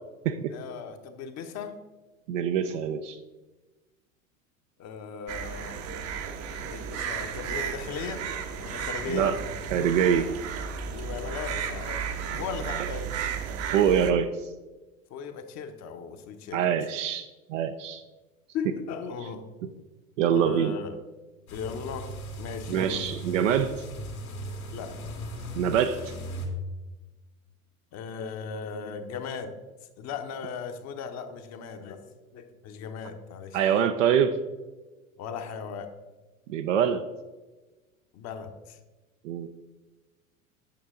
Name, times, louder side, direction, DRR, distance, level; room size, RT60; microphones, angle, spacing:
voice 1, 0.5-1.8 4.8-5.8 6.6-9.6 10.9-12.0 12.3-13.1 15.1-16.6 18.5-19.5 20.3-21.0 21.5-22.1 22.4-23.2 24.7-24.9 27.9-29.5 30.0-32.0 32.3-33.7 35.2-35.9 38.1-38.8, left 6 dB, 40° left, 6 dB, 1.0 m, -37 dB
voice 2, 2.3-3.2 9.1-9.4 9.7-10.3 13.7-14.3 16.5-18.0 20.2-20.7 22.7-23.7 25.5-26.1 33.5-34.4 36.5-37.0 39.2-39.5, right 8 dB, 65° right, 7 dB, 0.6 m, -24 dB
sound 1, 5.3-14.1, right 7 dB, 35° right, 0.8 m, -34 dB
sound 2, 21.5-26.5, right 1 dB, 85° left, 2.1 m, -38 dB
8.8 x 6.2 x 3.7 m, 1.2 s
hypercardioid pair, 85°, 42 cm